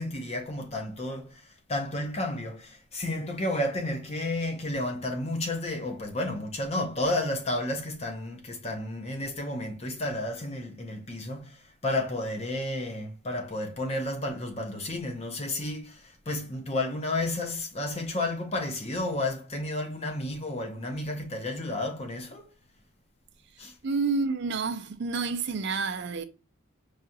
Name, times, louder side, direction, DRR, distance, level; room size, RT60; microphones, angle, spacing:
voice 1, 0.0-1.4 1.7-22.5 23.6-23.7, left 1 dB, 30° left, 0.7 m, -32 dB
voice 2, 23.8-26.2, right 4 dB, 55° right, 0.4 m, -29 dB
4.8 x 2.4 x 2.7 m
head